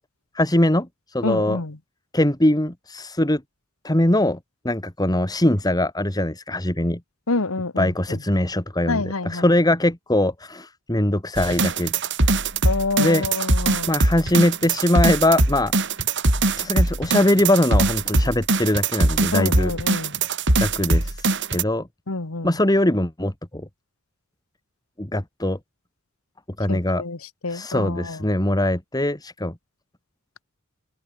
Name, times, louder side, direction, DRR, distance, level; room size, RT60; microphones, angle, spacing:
voice 1, 0.3-1.6 2.1-3.4 3.8-4.4 4.6-7.0 7.8-11.9 13.0-13.3 13.9-15.7 16.6-20.1 20.6-21.9 22.4-23.7 25.0-25.6 26.6-27.0 27.5-29.6, left 1 dB, 20° left, 2.2 m, -22 dB
voice 2, 1.2-1.8 7.3-8.2 8.9-9.4 12.6-13.9 19.3-20.1 22.1-22.5 26.7-27.2 27.4-28.2, left 3 dB, 85° left, 1.6 m, -27 dB
sound 1, 11.4-21.6, right 2 dB, 60° right, 4.9 m, -21 dB
head